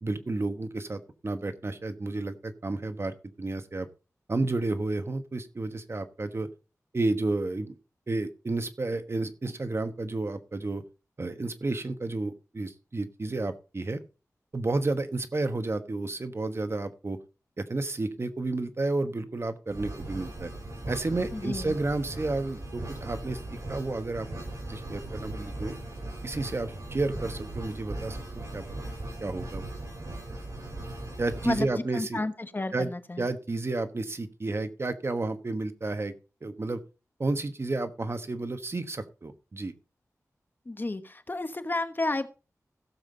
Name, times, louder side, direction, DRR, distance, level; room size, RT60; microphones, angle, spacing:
voice 1, 0.0-3.9 4.3-6.5 6.9-7.8 8.1-10.8 11.2-14.0 14.5-17.2 17.6-20.5 20.9-24.3 24.7-25.7 26.2-28.6 29.2-29.6 31.2-32.2 32.7-32.9 33.2-36.1 36.4-36.8 37.2-39.7, right 2 dB, 45° right, 10 dB, 1.2 m, -31 dB
sound 1, 19.7-31.6, right 1 dB, 65° right, 7.2 m, -38 dB
voice 2, 21.3-21.8 31.4-33.2 40.7-42.3, left 2 dB, 35° left, 10 dB, 1.1 m, -32 dB
16.0 x 7.3 x 3.9 m, 0.32 s
wide cardioid pair, 80°, 6 cm